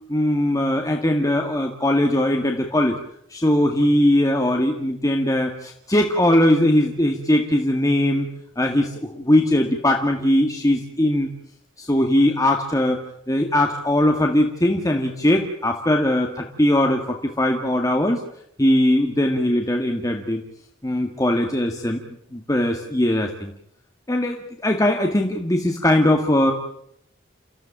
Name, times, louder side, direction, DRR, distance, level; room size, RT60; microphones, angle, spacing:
voice 1, 0.1-3.0 3.3-8.3 8.6-11.3 11.8-13.0 13.3-18.2 18.6-20.4 20.8-22.0 22.3-23.5 24.1-26.5, left 1 dB, 20° left, 2 dB, 2.0 m, -20 dB
29.5 x 15.0 x 8.8 m, 0.74 s
head